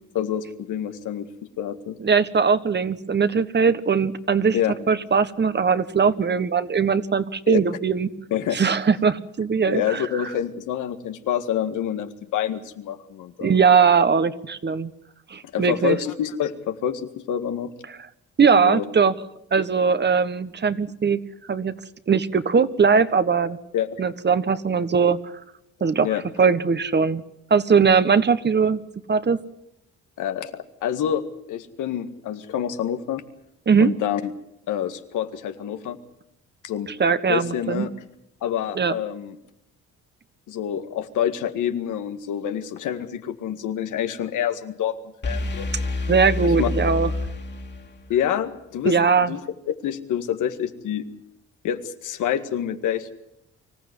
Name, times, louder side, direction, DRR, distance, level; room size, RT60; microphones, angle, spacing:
voice 1, 0.1-1.3 1.6-2.0 4.5-4.7 7.5-7.6 8.3-8.6 9.7-13.5 15.5-17.7 18.6-18.8 23.7-23.9 26.0-26.2 30.2-31.2 31.5-33.2 33.8-34.3 34.7-36.0 36.6-36.9 37.3-37.9 38.4-39.4 40.5-45.0 45.2-45.7 46.6-46.7 48.1-49.0 49.3-49.4 49.8-51.1 51.6-53.1, left 9 dB, 85° left, 8 dB, 2.0 m, -27 dB
voice 2, 2.0-4.6 4.9-8.1 8.5-10.0 13.4-14.9 15.3-16.0 18.4-19.1 19.5-21.2 21.5-21.7 22.1-23.6 24.0-25.2 25.8-26.1 26.4-27.2 27.5-28.8 29.1-29.4 33.7-33.9 37.0-37.9 38.7-38.9 46.1-47.1 48.8-49.3, right 5 dB, 35° right, 13 dB, 1.4 m, -20 dB
sound 1, 45.2-48.1, left 2 dB, 35° left, 2.5 m, -28 dB
25.0 x 15.0 x 9.7 m, 0.81 s
cardioid pair, 90°, 30 cm